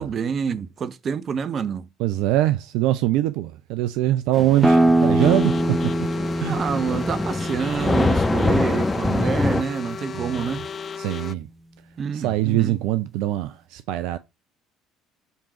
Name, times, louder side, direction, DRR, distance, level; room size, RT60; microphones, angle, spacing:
voice 1, 0.0-1.9 6.5-10.7 12.0-12.8, right 6 dB, 45° right, 0.8 m, -27 dB
voice 2, 2.0-5.8 6.4-6.6 10.1-10.5 11.0-11.5 12.1-14.2, right 14 dB, 70° right, 0.4 m, -23 dB
Thunder / Rain, 4.3-9.6, left 2 dB, 15° left, 1.0 m, -25 dB
sound 1, 4.6-10.0, right 1 dB, 10° right, 1.0 m, -23 dB
sound 2, 5.2-11.4, left 6 dB, 40° left, 0.5 m, -36 dB
7.2 x 3.7 x 4.3 m
hypercardioid pair, 60°, 0 cm